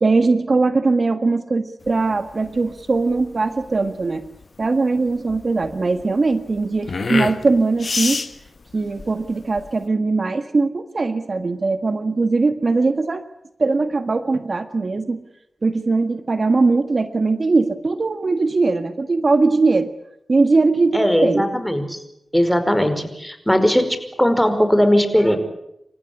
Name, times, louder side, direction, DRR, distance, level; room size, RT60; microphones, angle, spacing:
voice 1, 0.0-4.2 4.6-8.2 8.7-13.2 13.6-15.2 15.6-19.9 20.3-21.4, right 3 dB, 60° right, 10 dB, 1.5 m, -20 dB
sound 1, 1.8-9.8, left 4 dB, 65° left, 1.4 m, -29 dB
voice 2, 20.9-22.0 22.3-25.4, equal, 10° left, 9 dB, 5.1 m, -18 dB
29.0 x 15.0 x 9.8 m, 0.83 s
cardioid pair, 40°, 0 cm